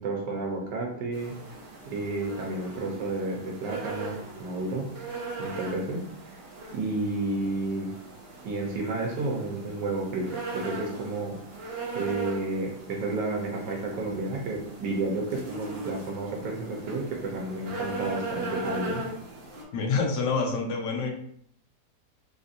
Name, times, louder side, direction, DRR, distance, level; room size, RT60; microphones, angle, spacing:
voice 1, 0.0-1.3 1.9-4.8 5.4-6.4 6.7-7.9 8.4-11.4 11.9-19.0, right 2 dB, 90° right, 0 dB, 1.3 m, -31 dB
sound 1, 1.1-19.6, right 2 dB, 50° right, 0.8 m, -39 dB
voice 2, 19.7-21.1, left 4 dB, 90° left, 2 dB, 1.3 m, -27 dB
3.5 x 2.6 x 2.4 m, 0.66 s
omnidirectional pair, 1.8 m